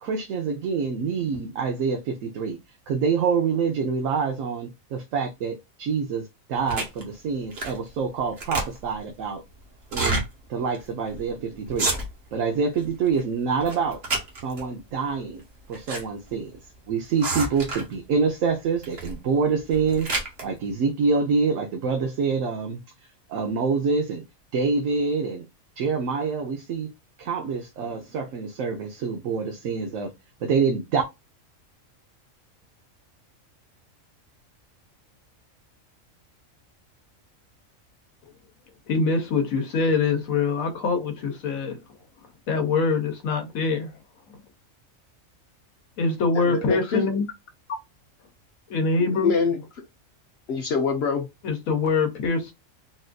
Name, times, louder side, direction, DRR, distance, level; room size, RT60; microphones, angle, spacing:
voice 1, 0.0-2.6 2.9-9.4 9.9-10.2 10.5-11.9 12.3-14.0 14.4-15.4 15.7-16.5 16.9-20.1 20.4-22.8 23.3-24.2 24.5-25.4 25.8-26.9 27.2-30.1 30.4-31.0, right 5 dB, 75° right, 1.0 m, -26 dB
sound 1, 6.7-7.0 7.5-7.9 8.2-9.0 9.8-10.2 10.7-10.8 11.1-11.3 11.7-12.3 12.7-13.2 13.6-14.6 15.4-16.0 16.3-16.4 17.2-18.0 18.8-19.2 19.6-20.4, right 3 dB, 50° right, 1.3 m, -29 dB
voice 2, 38.9-41.8 42.5-43.9 46.0-47.2 48.7-49.3 51.4-52.5, left 4 dB, 90° left, 1.2 m, -24 dB
voice 3, 46.3-47.0 49.0-49.6 50.5-51.3, left 5 dB, 60° left, 0.8 m, -25 dB
4.1 x 2.5 x 2.2 m
omnidirectional pair, 1.4 m